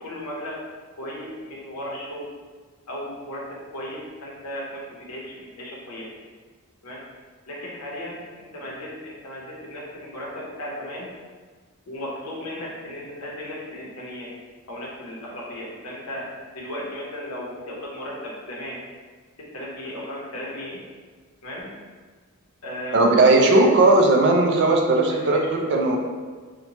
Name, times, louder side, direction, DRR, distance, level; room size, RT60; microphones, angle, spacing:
voice 1, 0.0-0.6 1.0-2.3 2.9-3.4 3.7-6.1 6.8-7.0 7.5-11.1 11.9-14.3 14.7-16.3 16.5-18.8 19.5-20.8 21.4-21.7 22.6-24.0 25.1-25.7, left 1 dB, 80° left, -4 dB, 0.7 m, -35 dB
voice 2, 22.9-26.0, right 2 dB, 50° right, 2 dB, 0.3 m, -17 dB
2.8 x 2.1 x 2.7 m, 1.5 s
head